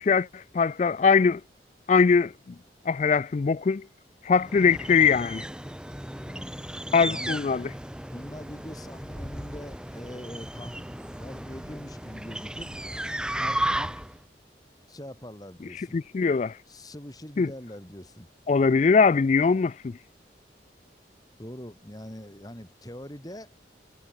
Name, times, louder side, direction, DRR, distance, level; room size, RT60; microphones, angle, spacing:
voice 1, 0.0-1.4 1.9-2.3 2.9-3.9 4.2-5.5 6.9-7.7 15.7-16.6 17.4-17.5 18.5-20.0, left 5 dB, 40° left, 0.3 m, -22 dB
sound 1, 4.4-14.2, right 1 dB, 5° right, 1.9 m, -35 dB
voice 2, 6.2-7.4 8.1-10.8 11.1-12.7 13.4-14.0 14.9-16.0 16.7-18.3 21.4-23.5, equal, 20° left, 3.4 m, -42 dB
head